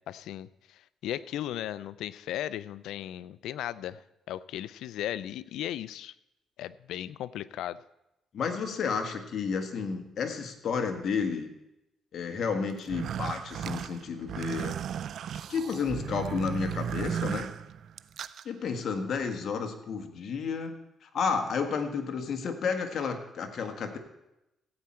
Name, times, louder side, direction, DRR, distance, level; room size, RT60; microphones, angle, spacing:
voice 1, 0.0-4.0 4.3-6.1 6.6-7.8, left 12 dB, 85° left, 17 dB, 0.4 m, -36 dB
voice 2, 8.3-11.5 12.1-14.8 15.5-17.5 18.4-20.7 21.0-24.0, left 5 dB, 60° left, 6 dB, 1.5 m, -31 dB
sound 1, 12.8-18.4, right 9 dB, 65° right, 0.4 m, -35 dB
14.5 x 8.7 x 4.4 m, 0.90 s
cardioid pair, 90°, 0 cm